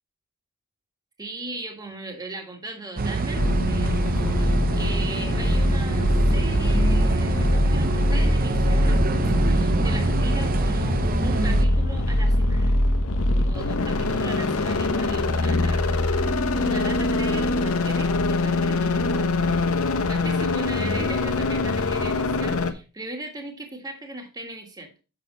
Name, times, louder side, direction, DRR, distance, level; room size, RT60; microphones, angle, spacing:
voice 1, 1.2-12.7 13.3-24.9, right 2 dB, 15° right, 3 dB, 1.6 m, -38 dB
sound 1, 3.0-11.6, right 3 dB, 40° right, 0.6 m, -26 dB
sound 2, 3.3-22.7, left 1 dB, 70° left, 1.0 m, -23 dB
7.3 x 6.4 x 5.3 m, 0.33 s
head